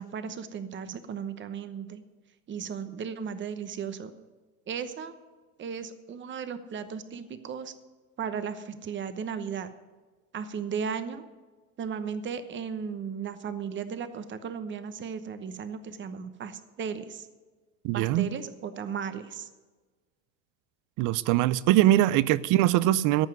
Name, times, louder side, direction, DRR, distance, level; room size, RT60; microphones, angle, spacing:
voice 1, 0.0-2.0 2.5-4.1 4.7-5.1 5.6-7.7 8.2-9.7 10.3-11.2 11.8-17.3 17.9-19.5, right 7 dB, 25° right, 1.0 m, -35 dB
voice 2, 17.8-18.3 21.0-23.3, right 14 dB, 50° right, 0.6 m, -22 dB
14.0 x 5.7 x 9.6 m
supercardioid pair, 110°, 42 cm